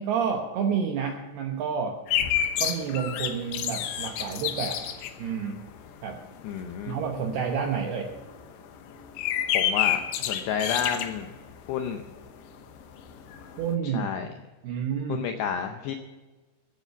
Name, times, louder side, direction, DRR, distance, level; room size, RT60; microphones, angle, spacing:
voice 1, 0.0-2.0 2.6-4.8 5.2-5.6 6.0-6.2 6.9-8.1 13.6-14.1 14.6-15.2, right 7 dB, 80° right, 3 dB, 2.3 m, -29 dB
sound 1, 2.1-12.2 12.5-12.6 12.8-13.7, left 10 dB, 75° left, 2.9 m, -29 dB
voice 2, 6.4-7.0 9.5-11.3 11.7-12.0 13.9-14.3 15.1-16.0, left 7 dB, 90° left, 5 dB, 2.4 m, -30 dB
15.0 x 8.4 x 6.9 m, 1.2 s
omnidirectional pair, 5.9 m